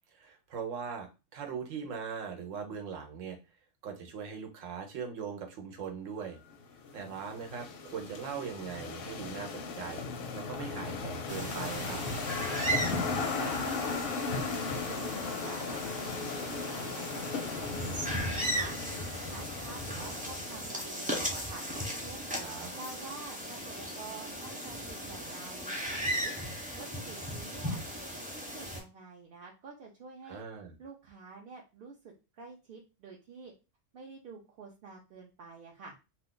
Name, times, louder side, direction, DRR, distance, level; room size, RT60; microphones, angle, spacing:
voice 1, 0.2-3.4 3.8-6.4 6.9-12.0 22.4-22.7 30.3-30.7, right 6 dB, 80° right, 4 dB, 1.1 m, -40 dB
sound 1, 6.5-21.0, left 4 dB, 60° left, 0.6 m, -37 dB
sound 2, 11.3-28.8, equal, 10° right, 0.5 m, -37 dB
voice 2, 13.2-15.8 16.4-27.8 28.3-30.4 30.8-33.5 33.9-35.9, right 4 dB, 60° right, -1 dB, 0.7 m, -48 dB
2.5 x 2.4 x 3.7 m, 0.29 s
omnidirectional pair, 1.3 m